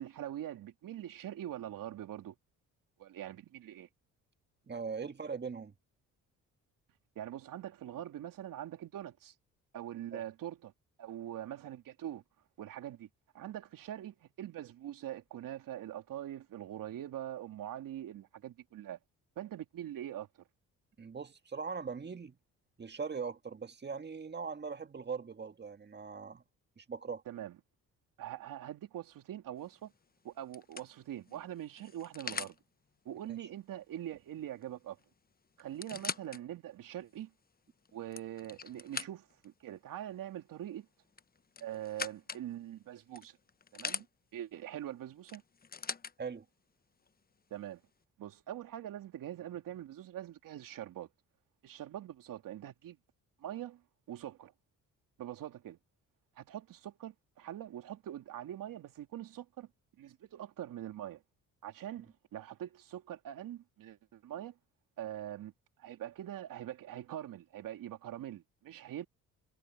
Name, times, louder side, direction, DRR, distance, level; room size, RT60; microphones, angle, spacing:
voice 1, 0.0-2.3 3.0-3.9 7.1-9.3 9.7-10.7 11.0-12.2 12.6-13.1 13.3-19.0 19.4-20.3 27.3-27.6 28.2-29.9 30.2-32.6 33.0-35.0 35.6-37.3 37.9-40.9 41.6-43.4 43.7-44.1 44.3-45.4 47.5-47.8 48.2-51.1 51.6-53.0 53.4-53.8 54.1-54.5 55.2-55.8 56.4-59.7 60.0-61.2 61.6-64.6 65.0-65.5 65.8-69.1, right 12 dB, 75° right, 3.0 m, -43 dB
voice 2, 4.7-5.7 10.1-10.2 21.0-22.3 22.8-26.4 26.8-27.2 33.4-33.5 46.2-46.4, right 5 dB, 30° right, 1.7 m, -40 dB
sound 1, 29.6-29.9 30.5-32.6 34.6-34.7 35.0-35.1 35.6-36.4 37.0-37.1 37.9-39.5 41.1-42.5 43.1-44.1 45.3-46.1 47.1-47.2, left 5 dB, 25° left, 0.9 m, -42 dB
supercardioid pair, 70°, 34 cm